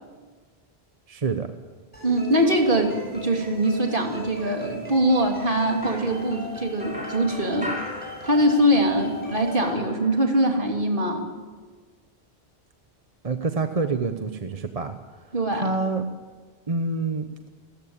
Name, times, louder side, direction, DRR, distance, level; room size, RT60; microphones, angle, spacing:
voice 1, 1.1-1.5 13.2-14.9 15.5-16.1 16.7-17.5, right 4 dB, 35° right, 8 dB, 1.0 m, -27 dB
sound 1, 1.9-9.7, right 1 dB, 10° left, 7.9 m, -38 dB
voice 2, 2.0-7.7 8.2-11.3 15.3-15.6, right 1 dB, 55° right, 2 dB, 3.1 m, -22 dB
sound 2, 5.8-8.8 9.1-10.6, equal, 5° right, 4.0 m, -38 dB
28.5 x 14.5 x 8.8 m, 1.4 s
omnidirectional pair, 1.1 m